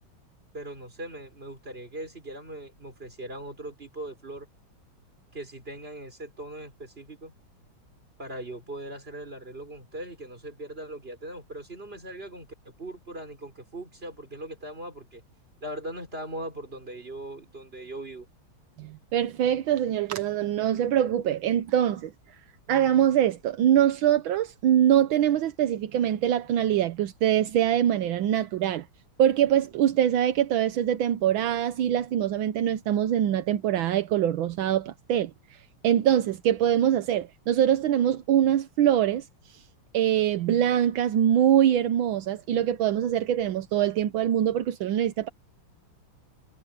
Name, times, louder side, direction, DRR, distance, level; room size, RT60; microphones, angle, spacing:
voice 1, 0.5-4.5 5.3-7.3 8.2-15.2 15.6-18.3, right 1 dB, 25° right, 4.9 m, -40 dB
voice 2, 18.8-22.1 22.7-28.9 29.2-35.3 35.8-39.2 39.9-45.3, right 10 dB, 80° right, 1.6 m, -23 dB
omnidirectional pair, 2.2 m